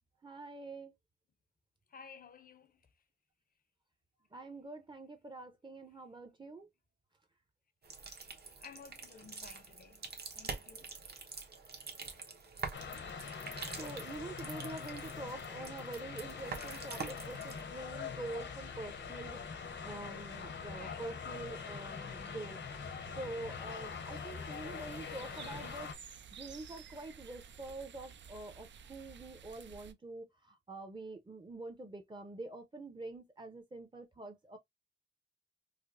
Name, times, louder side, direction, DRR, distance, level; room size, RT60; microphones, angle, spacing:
voice 1, 0.2-0.9 4.3-6.7 13.8-19.5 19.8-22.6 23.2-25.9 26.3-34.6, right 2 dB, 25° right, 0.6 m, -46 dB
voice 2, 1.9-2.8 8.1-8.3 8.6-10.0 10.3-11.2 20.7-21.2, left 6 dB, 50° left, 0.6 m, -54 dB
sound 1, 7.8-17.6, right 5 dB, 60° right, 1.0 m, -46 dB
sound 2, 12.7-25.9, left 6 dB, 80° left, 0.9 m, -43 dB
sound 3, 22.8-29.9, right 7 dB, 85° right, 0.4 m, -54 dB
4.9 x 2.0 x 2.4 m
wide cardioid pair, 120°, 19 cm